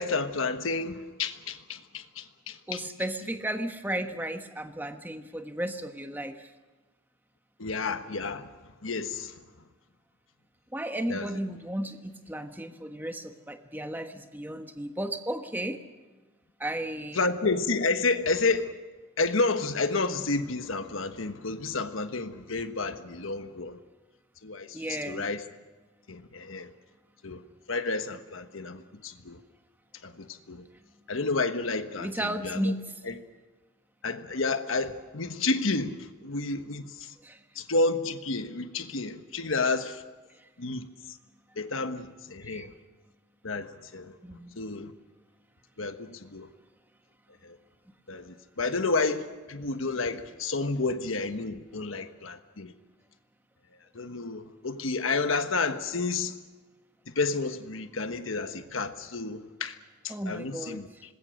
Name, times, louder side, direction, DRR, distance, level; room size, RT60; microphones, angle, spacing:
voice 1, 0.0-2.8 7.6-8.5 8.8-9.4 11.1-11.3 17.1-18.7 19.2-23.8 24.4-25.4 26.1-26.7 27.2-27.4 27.7-29.4 30.0-30.7 31.1-32.7 33.0-33.2 34.0-37.1 37.5-40.0 40.6-41.2 41.6-42.7 43.4-44.2 44.6-44.9 45.8-46.5 47.4-47.6 48.1-52.7 53.9-56.4 57.1-59.8 60.0-60.9, left 3 dB, 80° left, 1.3 m, -30 dB
voice 2, 2.7-6.5 10.7-15.8 16.6-17.2 24.7-25.2 32.0-32.9 37.2-37.4 42.4-42.7 44.2-44.6 60.1-61.0, right 1 dB, 10° right, 1.2 m, -34 dB
26.5 x 20.5 x 6.5 m
head